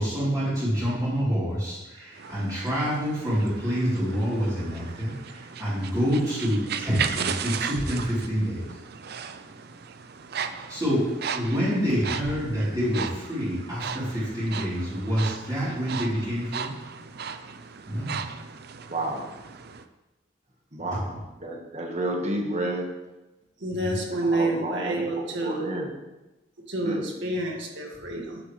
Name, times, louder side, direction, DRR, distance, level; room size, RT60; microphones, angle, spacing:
voice 1, 0.0-8.8 10.7-11.1 11.3-16.7 17.9-18.2 20.8-21.1 23.7-24.0, equal, 20° right, -10 dB, 3.6 m, -27 dB
sound 1, 2.1-19.8, right 7 dB, 55° right, 0.5 m, -36 dB
voice 2, 18.9-19.3 20.7-22.8 24.2-25.9 26.8-27.0, right 1 dB, 40° right, 1 dB, 1.5 m, -31 dB
voice 3, 23.6-25.7 26.7-28.4, right 2 dB, 70° right, 0 dB, 2.0 m, -28 dB
11.5 x 8.6 x 3.3 m, 1.1 s
head